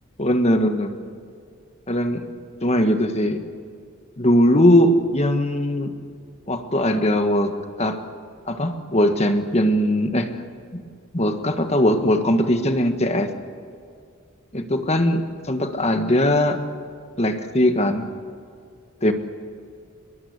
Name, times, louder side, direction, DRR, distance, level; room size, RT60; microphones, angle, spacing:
voice 1, 0.2-0.9 1.9-2.3 2.6-3.4 4.2-5.9 6.5-8.0 8.5-10.3 10.7-10.8 11.1-13.3 14.5-16.6 17.2-18.1 19.0-19.1, left 1 dB, 30° left, 7 dB, 1.6 m, -20 dB
23.0 x 21.5 x 8.3 m, 2.3 s
head